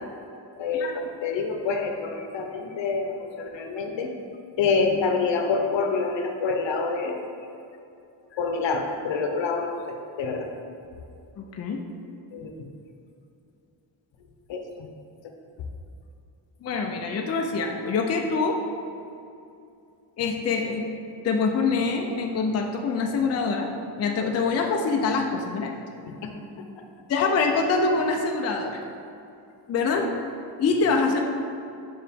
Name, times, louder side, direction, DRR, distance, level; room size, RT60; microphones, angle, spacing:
voice 1, 0.6-4.1 4.6-7.2 8.3-10.5 12.3-12.5 14.5-14.9 26.1-26.3, left 4 dB, 75° left, 3 dB, 0.8 m, -27 dB
voice 2, 11.4-11.8 16.6-18.6 20.2-20.9 21.2-23.7 24.0-25.7 27.1-28.8 29.7-30.1 30.6-31.2, left 4 dB, 35° left, 2 dB, 0.4 m, -25 dB
6.2 x 4.7 x 3.5 m, 2.6 s
wide cardioid pair, 175°, 44 cm